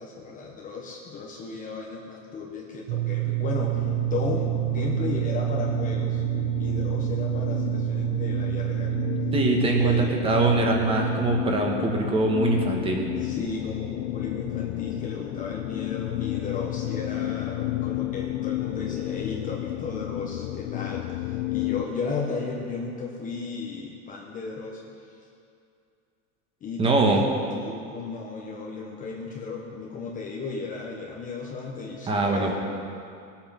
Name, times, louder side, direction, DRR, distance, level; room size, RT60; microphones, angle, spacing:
voice 1, 0.0-6.2 6.6-9.0 9.8-10.1 13.2-25.2 26.6-32.5, left 4 dB, 20° left, -2 dB, 1.2 m, -35 dB
sound 1, 2.9-11.2, right 27 dB, 60° right, 0.8 m, -28 dB
sound 2, 3.7-21.8, left 15 dB, 85° left, 0.6 m, -32 dB
voice 2, 9.3-13.1 26.8-27.2 32.1-32.5, right 2 dB, 15° right, 1 dB, 1.6 m, -23 dB
19.5 x 8.8 x 5.9 m, 2.5 s
supercardioid pair, 160°, 37 cm